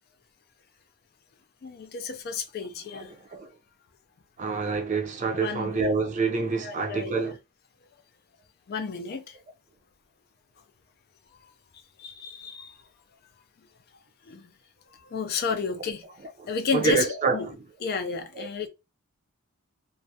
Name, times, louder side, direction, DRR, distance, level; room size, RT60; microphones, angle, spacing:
voice 1, 1.6-3.1 5.4-5.9 6.6-7.3 8.7-9.4 12.0-12.7 14.3-14.5 15.1-16.0 16.5-17.5 17.8-18.7, left 5 dB, 45° left, 0.4 m, -31 dB
voice 2, 2.9-3.5 4.4-7.4 16.4-17.5 18.3-18.7, right 4 dB, 35° right, 0.4 m, -28 dB
2.3 x 2.0 x 2.7 m
head